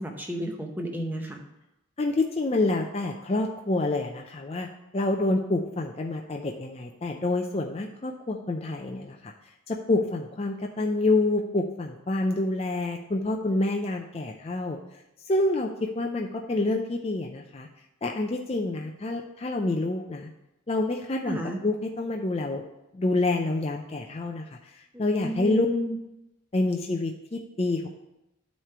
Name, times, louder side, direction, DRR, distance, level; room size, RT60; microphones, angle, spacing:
voice 1, 0.0-1.4 21.2-21.6 25.2-26.0, left 1 dB, 10° right, 2 dB, 0.7 m, -31 dB
voice 2, 2.0-9.3 9.7-14.8 15.3-17.7 18.0-20.3 20.7-22.6 22.9-25.7 26.5-27.9, left 2 dB, 30° left, 2 dB, 0.4 m, -27 dB
9.0 x 3.2 x 6.6 m, 0.90 s
head